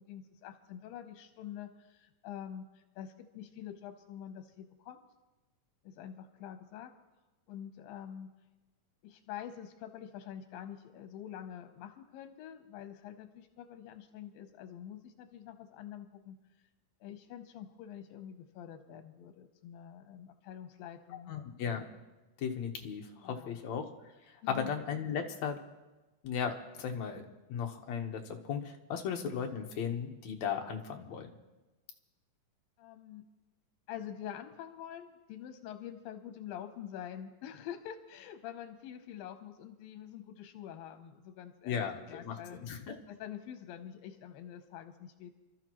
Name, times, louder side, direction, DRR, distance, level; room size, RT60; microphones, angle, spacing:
voice 1, 0.0-5.0 5.8-6.9 7.5-8.3 9.0-16.4 17.0-21.3 23.2-23.6 24.4-24.7 29.0-29.1 32.8-33.3 33.9-42.6 43.1-45.3, left 10 dB, 85° left, 7 dB, 2.6 m, -46 dB
voice 2, 21.3-21.8 22.4-23.9 24.3-25.6 26.2-27.2 27.5-31.3 41.6-43.0, left 7 dB, 60° left, 3 dB, 2.2 m, -36 dB
29.0 x 13.0 x 3.0 m, 1.1 s
omnidirectional pair, 4.0 m